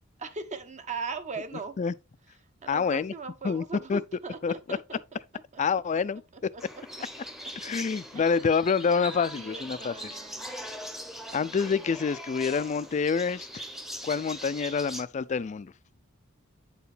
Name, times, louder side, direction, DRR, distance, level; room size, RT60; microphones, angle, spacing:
voice 1, 0.2-1.8 2.6-5.2 5.5-5.6 6.5-6.6 8.1-8.2 9.3-10.5, right 4 dB, 35° right, 0.8 m, -39 dB
voice 2, 2.7-3.1 3.4-3.6 3.9-4.0 4.4-4.8 5.6-6.2 7.6-9.9 11.3-13.6 14.0-15.7, left 5 dB, 35° left, 0.3 m, -27 dB
sound 1, 6.6-15.0, equal, ahead, 0.8 m, -41 dB
9.0 x 4.6 x 3.3 m
head